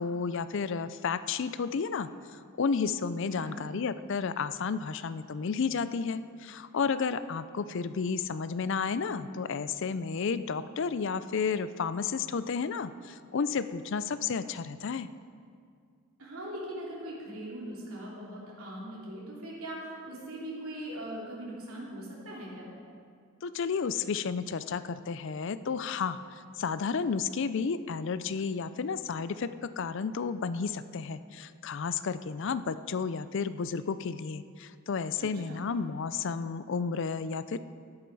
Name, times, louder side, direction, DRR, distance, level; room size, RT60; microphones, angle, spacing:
voice 1, 0.0-15.1 23.4-37.6, left 5 dB, 60° left, 14 dB, 0.4 m, -32 dB
voice 2, 3.3-3.6 16.2-22.7 35.2-35.6, right 1 dB, 85° right, -5 dB, 3.0 m, -40 dB
12.5 x 11.0 x 4.7 m, 2.2 s
head